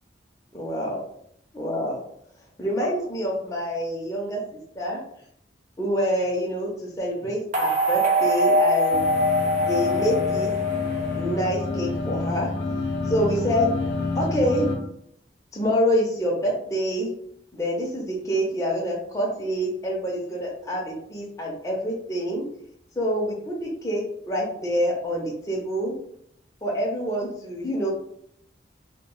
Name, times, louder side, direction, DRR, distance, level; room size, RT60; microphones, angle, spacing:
voice 1, 0.5-1.0 1.5-2.0 2.6-4.4 4.8-5.0 5.8-9.0 9.6-10.5 11.2-12.5 13.1-13.7 14.1-14.7 15.5-17.1 17.5-22.5 23.0-26.0 26.6-27.9, equal, 15° left, -3 dB, 0.4 m, -26 dB
sound 1, 7.5-11.8, left 1 dB, 40° right, 0.5 m, -23 dB
sound 2, 8.9-14.8, left 3 dB, 75° left, 0.5 m, -29 dB
2.1 x 2.0 x 3.6 m, 0.71 s
head